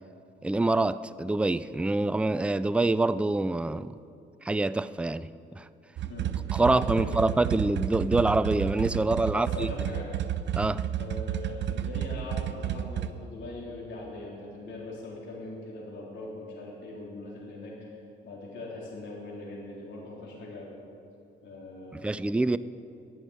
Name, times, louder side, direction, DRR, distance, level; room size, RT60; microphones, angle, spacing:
voice 1, 0.4-3.9 4.4-5.6 6.5-9.7 10.6-10.8 21.9-22.6, right 2 dB, 5° right, 14 dB, 0.4 m, -26 dB
sound 1, 6.0-13.1, right 10 dB, 65° right, 0.6 m, -31 dB
voice 2, 6.6-7.4 9.2-10.1 11.0-18.0 18.2-20.7 21.4-22.2, left 2 dB, 70° left, -4 dB, 3.8 m, -41 dB
12.0 x 11.0 x 9.5 m, 2.8 s
cardioid pair, 90°, 20 cm